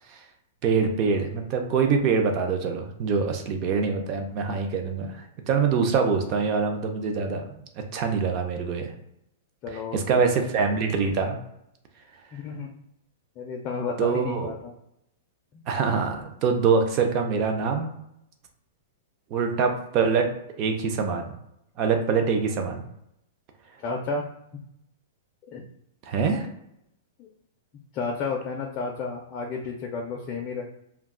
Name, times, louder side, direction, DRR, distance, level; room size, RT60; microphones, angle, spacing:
voice 1, 0.6-8.9 9.9-11.4 14.0-14.5 15.7-17.9 19.3-20.3 20.6-21.3 21.8-22.8 26.1-26.5, right 5 dB, 30° right, 4 dB, 0.5 m, -24 dB
voice 2, 9.6-10.2 12.3-12.7 13.4-14.7 15.5-15.6 23.8-24.2 25.5-25.6 27.2-27.3 27.9-30.6, left 4 dB, 25° left, 0 dB, 0.4 m, -32 dB
2.3 x 2.2 x 3.6 m, 0.79 s
supercardioid pair, 165°, 0 cm